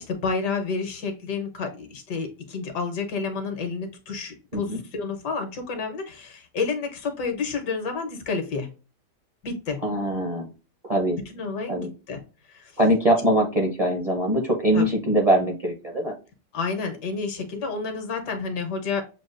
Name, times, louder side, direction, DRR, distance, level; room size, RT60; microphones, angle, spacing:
voice 1, 0.0-8.7 9.4-9.8 11.1-12.2 12.5-12.7 14.7-14.9 16.5-19.0, left 4 dB, 75° left, 5 dB, 1.6 m, -30 dB
voice 2, 9.8-10.5 10.8-11.2 11.7-11.9 12.8-16.1, right 1 dB, 35° right, 1 dB, 0.6 m, -22 dB
6.9 x 2.4 x 2.4 m, 0.33 s
omnidirectional pair, 1.8 m